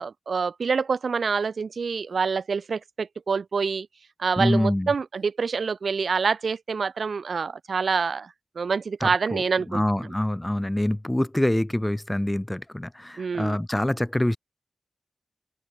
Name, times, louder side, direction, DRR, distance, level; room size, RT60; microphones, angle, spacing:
voice 1, 0.0-3.9 4.2-9.8 13.2-13.6, right 5 dB, 80° right, 1.3 m, -26 dB
voice 2, 4.4-4.9 9.0-14.4, left 1 dB, 10° left, 1.9 m, -25 dB
open air
wide cardioid pair, 95°, 0 cm